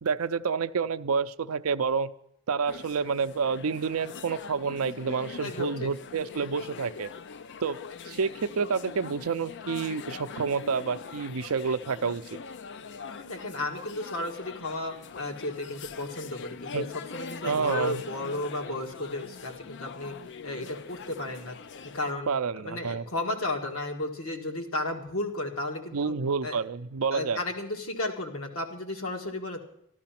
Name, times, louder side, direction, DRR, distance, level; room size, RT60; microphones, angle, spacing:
voice 1, 0.0-2.1 2.5-7.1 7.6-7.8 8.0-12.2 16.7-16.9 17.4-18.0 22.3-23.0 25.9-27.4, right 5 dB, 75° right, 12 dB, 0.5 m, -29 dB
sound 1, 2.7-22.1, left 5 dB, 55° left, 0.5 m, -43 dB
voice 2, 5.4-5.9 13.1-16.9 17.1-20.2 20.4-21.6 21.9-22.3 22.6-26.1 26.4-26.6 27.1-29.6, left 2 dB, 70° left, 3 dB, 1.9 m, -33 dB
13.0 x 12.5 x 5.9 m, 0.74 s
head